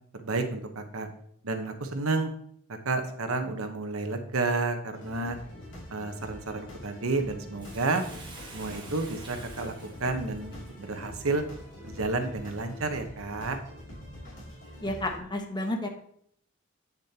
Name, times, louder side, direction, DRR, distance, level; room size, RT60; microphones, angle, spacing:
voice 1, 0.1-1.1 1.4-2.3 2.7-5.4 5.9-8.0 8.5-9.7 10.0-11.4 11.8-13.6, right 3 dB, 80° right, 6 dB, 1.0 m, -31 dB
sound 1, 4.9-15.2, left 1 dB, 65° left, 2.7 m, -45 dB
Bathtub (filling or washing), 7.6-12.1 12.7-12.8, right 3 dB, 25° right, 1.6 m, -49 dB
voice 2, 14.8-15.9, left 1 dB, 20° left, 3 dB, 1.1 m, -31 dB
8.3 x 7.1 x 2.8 m, 0.66 s
head